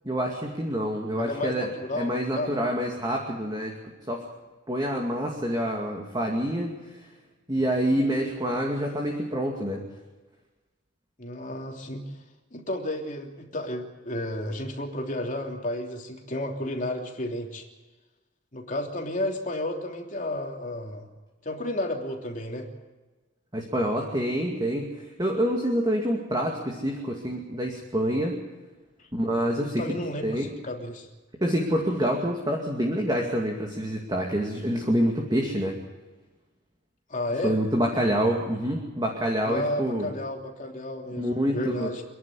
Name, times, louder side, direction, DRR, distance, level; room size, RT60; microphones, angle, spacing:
voice 1, 0.0-1.7 2.0-3.8 4.1-4.3 4.7-6.7 7.5-9.8 23.5-28.4 29.1-29.8 30.2-30.5 31.4-35.7 37.4-40.1 41.1-41.9, equal, 20° right, 0 dB, 2.4 m, -27 dB
voice 2, 1.2-2.5 11.2-12.0 12.5-17.6 18.5-21.1 21.4-22.7 29.6-31.1 37.1-37.6 39.4-42.0, left 1 dB, 40° left, 1 dB, 3.2 m, -32 dB
27.5 x 11.0 x 9.9 m, 1.2 s
head